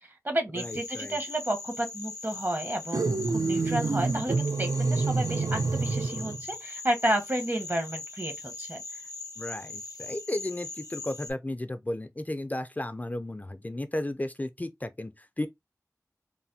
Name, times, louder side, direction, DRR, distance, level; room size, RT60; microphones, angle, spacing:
voice 1, 0.0-9.0, right 1 dB, 35° right, 0.9 m, -31 dB
sound 1, 0.6-11.3, left 3 dB, 75° left, 0.5 m, -41 dB
voice 2, 0.6-1.2 9.4-15.5, left 1 dB, 25° left, 0.3 m, -34 dB
sound 2, 2.9-6.4, right 3 dB, 70° right, 0.3 m, -27 dB
3.1 x 2.1 x 2.6 m
wide cardioid pair, 50°, 6 cm